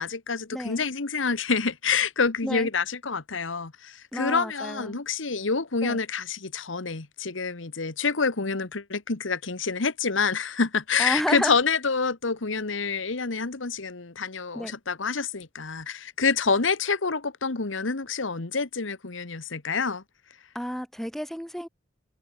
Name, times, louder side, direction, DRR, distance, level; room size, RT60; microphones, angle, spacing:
voice 1, 0.0-20.0, left 5 dB, 80° left, 1.3 m, -27 dB
voice 2, 0.5-0.9 2.4-2.7 4.1-5.0 5.8-6.0 11.0-11.6 14.5-14.7 20.5-21.7, equal, ahead, 1.1 m, -31 dB
head